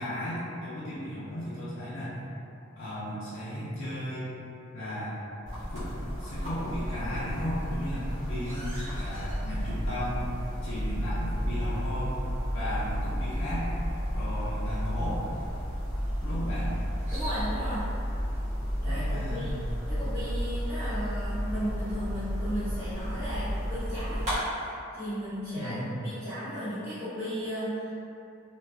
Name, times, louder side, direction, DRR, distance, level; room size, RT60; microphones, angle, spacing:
voice 1, 0.0-2.2 2.8-4.3 4.7-5.1 5.7-5.9 6.2-10.2 10.6-12.1 12.5-13.7 14.1-15.2 16.2-16.7 18.9-19.6 25.5-25.9, equal, 70° left, -11 dB, 0.6 m, -35 dB
sound 1, 5.5-24.4, equal, 35° right, 1.2 m, -32 dB
voice 2, 17.1-17.9 18.8-19.5 19.9-27.9, equal, 15° right, -17 dB, 0.7 m, -35 dB
3.2 x 2.5 x 2.2 m, 2.7 s
head